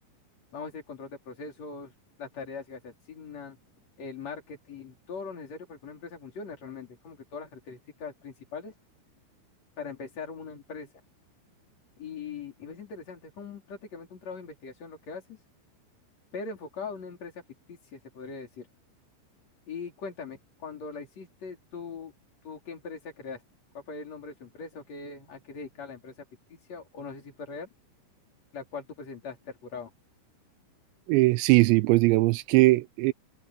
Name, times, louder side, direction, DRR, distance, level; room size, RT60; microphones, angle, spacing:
voice 1, 0.5-1.9 2.2-3.6 4.0-8.7 9.8-10.9 12.0-15.4 16.3-17.4 17.7-18.7 19.7-22.1 22.4-23.4 23.7-26.1 26.5-27.7 28.5-29.9, left 5 dB, 35° left, 4.7 m, -41 dB
voice 2, 31.1-33.1, right 21 dB, 85° right, 2.6 m, -20 dB
open air
omnidirectional pair, 5.6 m